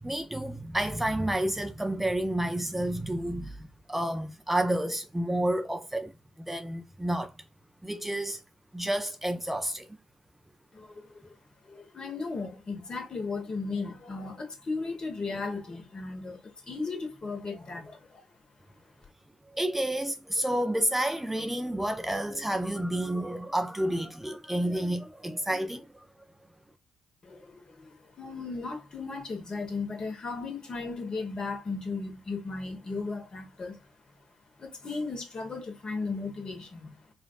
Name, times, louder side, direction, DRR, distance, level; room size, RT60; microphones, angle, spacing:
voice 1, 0.0-6.1 6.4-7.3 7.8-8.4 8.7-9.9 19.5-26.1, right 1 dB, 10° right, 0.4 m, -30 dB
voice 2, 10.7-11.1 11.6-18.2 27.2-27.9 28.2-33.8 34.6-37.0, left 4 dB, 35° left, 1.1 m, -36 dB
4.9 x 2.4 x 2.3 m
figure-of-eight pair, 40°, 2 cm